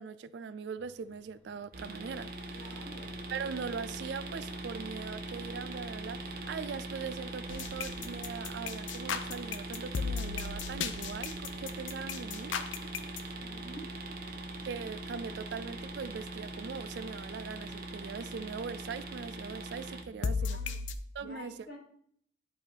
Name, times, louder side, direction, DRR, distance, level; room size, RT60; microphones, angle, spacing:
voice 1, 0.0-2.8 3.3-12.6 14.6-20.6 21.1-21.6, right 6 dB, 70° right, 0.3 m, -41 dB
sound 1, 0.8-16.2, right 1 dB, 30° left, 1.5 m, -64 dB
sound 2, 1.7-20.0, right 2 dB, 50° right, 0.9 m, -41 dB
voice 2, 2.5-3.2 13.4-13.9 20.2-20.8 21.2-21.8, equal, 50° left, 1.9 m, -48 dB
sound 3, 7.5-13.2 20.2-20.9, left 5 dB, 90° left, 0.5 m, -35 dB
10.5 x 3.5 x 4.4 m
head